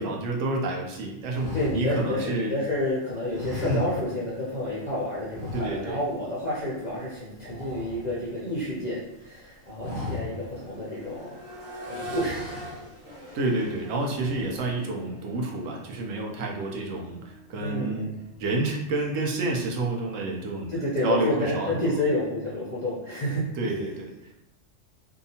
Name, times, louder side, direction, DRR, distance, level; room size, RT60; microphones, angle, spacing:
voice 1, 0.0-2.5 3.6-3.9 5.5-6.0 13.3-21.9 23.5-24.1, right 2 dB, 80° right, 0 dB, 0.9 m, -29 dB
sound 1, 1.3-2.8 3.3-4.4 4.7-4.9 5.3-6.2 6.4-6.7 6.9-8.7 9.1-9.4 9.7-10.6 11.0-11.1 11.9-13.0 13.5-13.8 14.1-14.7, left 2 dB, 50° right, 1.2 m, -37 dB
voice 2, 1.5-11.4 11.9-12.6 17.6-18.1 20.7-23.4, left 1 dB, 55° left, -7 dB, 0.5 m, -29 dB
Accelerating revving vroom, 8.3-8.5 8.9-18.8 20.5-20.6, right 1 dB, 30° right, 1.0 m, -44 dB
2.7 x 2.4 x 2.7 m, 0.91 s
omnidirectional pair, 1.3 m